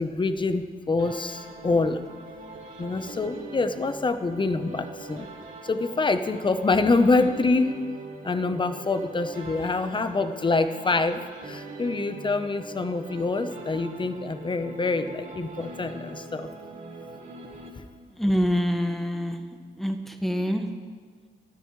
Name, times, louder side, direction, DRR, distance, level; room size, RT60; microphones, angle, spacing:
voice 1, 0.0-2.0 2.8-5.3 5.6-7.8 8.2-16.5 17.8-17.9, left 3 dB, 25° left, 9 dB, 1.0 m, -26 dB
sound 1, 1.0-18.2, right 3 dB, 40° right, 2.1 m, -42 dB
voice 2, 18.2-19.4 19.8-20.6, equal, ahead, 4 dB, 1.6 m, -25 dB
27.0 x 10.0 x 3.3 m, 1.5 s
cardioid pair, 90°, 20 cm